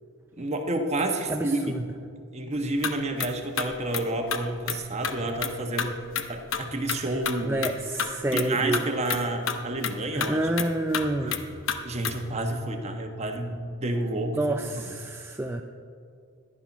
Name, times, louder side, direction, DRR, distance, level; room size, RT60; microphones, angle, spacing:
voice 1, 0.4-1.8 2.3-5.9 6.3-7.7 8.3-10.5 11.2-11.3 11.8-15.0, right 2 dB, 30° right, 4 dB, 1.2 m, -30 dB
voice 2, 1.3-1.8 7.5-8.8 10.1-11.4 14.4-15.6, right 1 dB, 10° right, 3 dB, 0.4 m, -28 dB
sound 1, 2.5-2.9 3.2-3.3 3.6-4.8 5.0-5.5 5.8-8.5 8.7-8.8 9.1-9.2 9.5-12.3, left 7 dB, 65° left, 0.9 m, -30 dB
14.5 x 11.0 x 6.0 m, 2.3 s
head